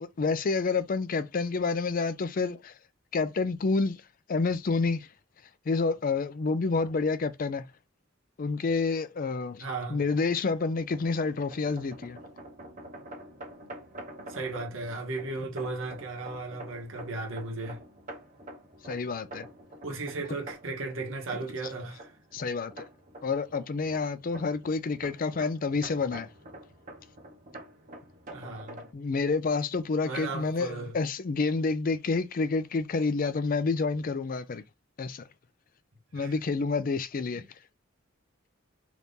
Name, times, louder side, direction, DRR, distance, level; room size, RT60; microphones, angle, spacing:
voice 1, 0.0-2.7 3.1-4.0 4.3-5.1 5.7-7.7 8.4-12.2 18.8-19.5 22.3-22.9 23.2-26.3 28.9-34.6 35.0-35.2 36.1-37.4, left 4 dB, 45° left, 0.4 m, -29 dB
voice 2, 9.6-10.0 14.2-17.8 19.8-22.1 28.3-28.9 30.0-31.0 36.1-36.3 37.3-37.5, right 3 dB, 85° right, 1.1 m, -36 dB
sound 1, 10.5-28.9, right 1 dB, 40° right, 0.9 m, -47 dB
2.9 x 2.7 x 3.5 m
head